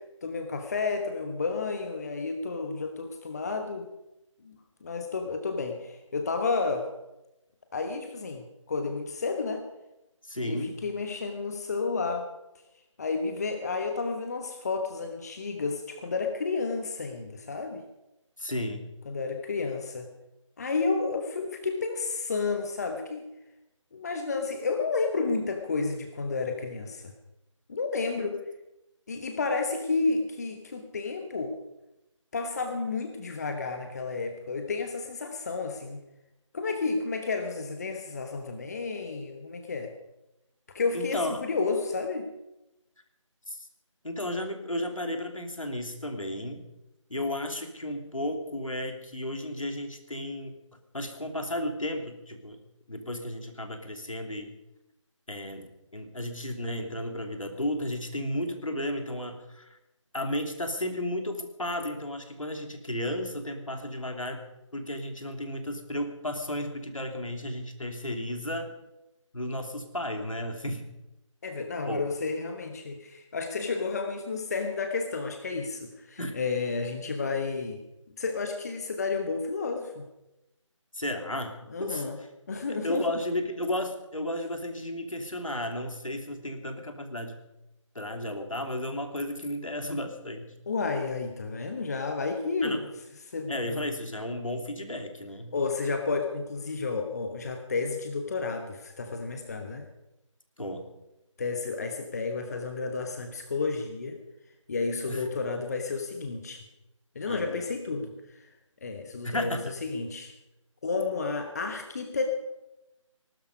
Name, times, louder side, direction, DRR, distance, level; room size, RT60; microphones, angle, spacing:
voice 1, 0.2-3.9 4.4-6.9 7.7-9.7 10.4-12.3 13.0-17.8 19.1-20.1 20.6-23.2 23.9-27.1 27.7-28.4 29.1-31.6 32.3-36.0 36.5-39.9 40.7-42.3 71.4-77.8 78.2-80.0 81.7-82.2 82.5-83.1 90.7-92.9 93.2-93.8 95.5-99.9 101.4-104.2 104.7-106.6 107.1-108.5 108.8-110.3 110.8-112.3, left 4 dB, 30° left, 5 dB, 1.2 m, -31 dB
voice 2, 10.2-10.8 18.4-18.9 40.9-41.4 43.5-43.7 44.0-46.6 47.1-50.5 50.9-52.6 52.9-54.5 55.3-59.8 60.1-64.4 64.7-68.7 69.3-70.9 71.8-72.1 76.2-76.4 80.9-82.0 82.7-87.4 87.9-90.5 92.6-92.8 93.5-95.5 100.6-100.9 105.1-105.3 107.3-107.6 109.2-109.7, left 1 dB, 80° left, 5 dB, 2.9 m, -33 dB
20.0 x 12.5 x 5.3 m, 0.93 s
figure-of-eight pair, 160°, 17 cm